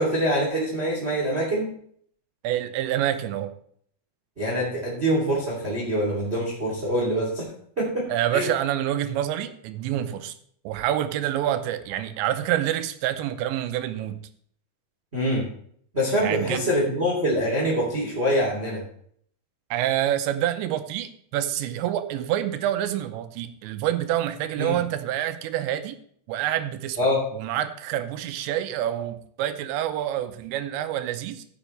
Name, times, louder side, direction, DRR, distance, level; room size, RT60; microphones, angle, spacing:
voice 1, 0.0-1.7 4.4-7.5 7.8-8.5 15.1-15.4 15.9-18.8 24.6-24.8 27.0-27.2, equal, 20° right, -4 dB, 2.3 m, -25 dB
voice 2, 2.4-3.5 8.1-10.4 10.7-14.3 16.2-16.7 19.7-26.0 26.3-31.4, right 12 dB, 85° right, 10 dB, 2.9 m, -27 dB
16.0 x 7.1 x 3.2 m, 0.63 s
omnidirectional pair, 5.2 m